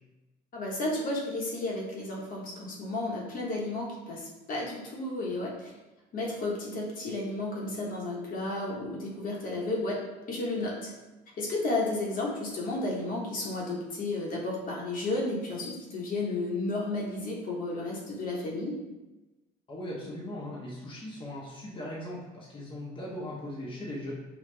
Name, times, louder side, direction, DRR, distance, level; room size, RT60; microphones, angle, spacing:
voice 1, 0.5-5.7 6.1-10.0 10.3-10.9 11.4-18.8, left 2 dB, 55° left, -3 dB, 1.1 m, -32 dB
voice 2, 19.7-24.1, left 1 dB, 30° left, -5 dB, 0.8 m, -39 dB
5.1 x 2.3 x 3.2 m, 1.1 s
cardioid pair, 110°, 17 cm